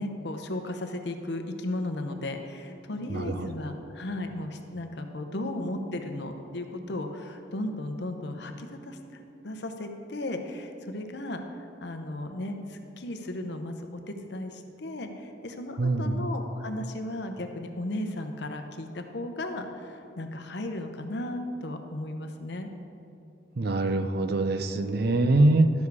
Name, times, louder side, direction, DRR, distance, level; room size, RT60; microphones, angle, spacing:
voice 1, 0.0-22.7, left 1 dB, 60° left, 6 dB, 0.8 m, -35 dB
voice 2, 3.1-3.5 15.8-16.2 23.6-25.7, right 2 dB, 55° right, 9 dB, 0.5 m, -24 dB
11.5 x 7.2 x 4.7 m, 2.7 s
head